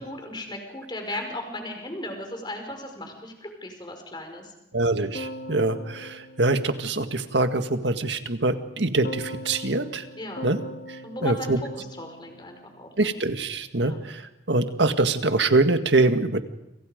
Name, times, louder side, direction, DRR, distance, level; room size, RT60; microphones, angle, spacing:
voice 1, 0.0-4.5 10.2-10.4 11.0-13.1 13.8-14.0, left 1 dB, 25° left, 4 dB, 5.3 m, -36 dB
voice 2, 4.7-10.1 10.4-10.6 10.9-11.6 13.0-16.4, right 2 dB, 85° right, 8 dB, 1.8 m, -24 dB
Keyboard (musical), 5.1-7.5 9.0-13.3, left 1 dB, 60° left, 1.6 m, -40 dB
29.5 x 27.0 x 5.2 m, 0.90 s
head